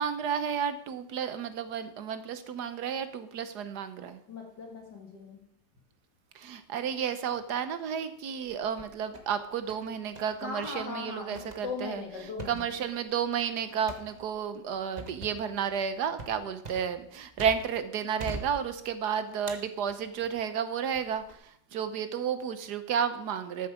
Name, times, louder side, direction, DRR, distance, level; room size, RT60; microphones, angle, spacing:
voice 1, 0.0-4.2 6.3-12.0 12.5-23.7, right 7 dB, 70° right, 11 dB, 1.4 m, -32 dB
voice 2, 4.3-5.4 10.4-12.7, left 4 dB, 75° left, 1 dB, 2.8 m, -39 dB
sound 1, 8.5-9.4 9.7-10.4 10.6-10.8 11.4-17.8 18.2-19.0 19.5-20.4 21.0-21.4, right 2 dB, 25° right, 1.2 m, -44 dB
13.5 x 7.5 x 4.9 m, 0.67 s
omnidirectional pair, 1.9 m